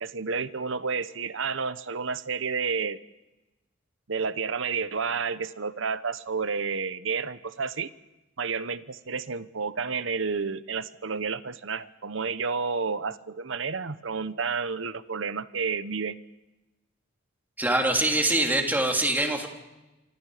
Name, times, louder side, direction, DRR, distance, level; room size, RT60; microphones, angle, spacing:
voice 1, 0.0-3.0 4.1-7.9 8.4-16.2, right 5 dB, 70° right, 14 dB, 1.0 m, -30 dB
voice 2, 17.6-19.5, right 1 dB, 10° right, 2 dB, 3.2 m, -24 dB
27.5 x 25.5 x 5.0 m, 1.0 s
head